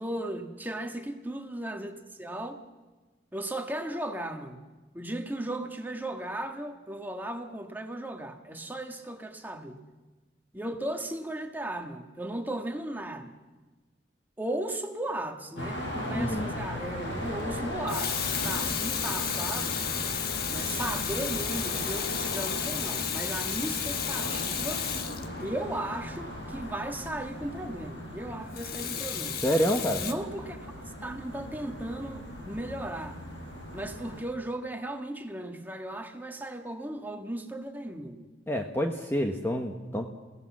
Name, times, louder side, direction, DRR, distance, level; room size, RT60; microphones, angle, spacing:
voice 1, 0.0-2.6 3.3-4.6 4.9-9.8 10.5-13.3 14.4-18.1 18.4-19.8 20.5-24.8 25.4-29.4 30.0-30.6 31.0-33.2 33.7-38.3, right 1 dB, 10° right, 4 dB, 1.7 m, -36 dB
sound 1, 15.6-34.2, left 1 dB, 80° left, 6.3 m, -37 dB
Water tap faucet / Sink (filling or washing), 16.1-16.3 17.7-25.9 28.5-30.1, left 9 dB, 55° left, 1.4 m, -33 dB
voice 2, 16.1-16.5 29.4-30.0 38.5-40.1, equal, 15° left, 4 dB, 1.1 m, -28 dB
28.0 x 17.0 x 7.4 m, 1.3 s
head